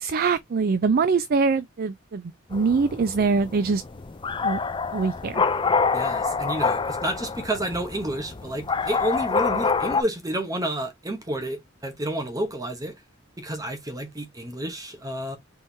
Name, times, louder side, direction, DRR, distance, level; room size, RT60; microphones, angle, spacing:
voice 1, 0.0-3.8 4.4-4.6 4.9-5.4, right 4 dB, 50° right, 0.4 m, -23 dB
sound 1, 2.5-10.0, left 5 dB, 25° left, 0.5 m, -26 dB
voice 2, 5.9-13.0 13.4-15.4, right 1 dB, 20° right, 1.0 m, -30 dB
4.5 x 3.5 x 2.7 m
head